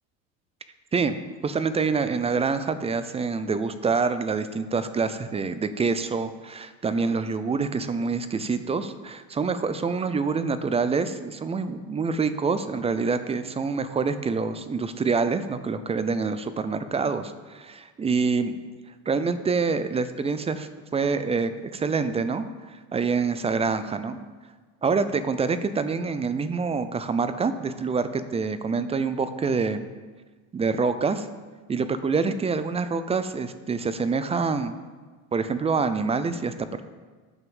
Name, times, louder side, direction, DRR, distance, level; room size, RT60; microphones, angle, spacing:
voice 1, 1.4-18.6 19.1-22.4 22.9-24.2 24.8-29.9 30.5-31.3 31.7-34.7 35.3-36.8, right 4 dB, 15° right, 11 dB, 0.4 m, -26 dB
9.5 x 5.7 x 7.1 m, 1.4 s
supercardioid pair, 120°, 43 cm